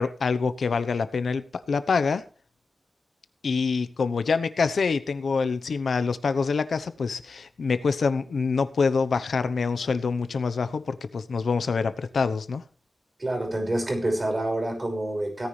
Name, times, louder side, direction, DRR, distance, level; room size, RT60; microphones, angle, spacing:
voice 1, 0.0-2.2 3.4-12.6, left 5 dB, 90° left, 11 dB, 0.9 m, -26 dB
voice 2, 13.2-15.5, right 1 dB, 35° right, 3 dB, 5.9 m, -27 dB
17.5 x 9.8 x 3.4 m, 0.40 s
wide cardioid pair, 70°, 0 cm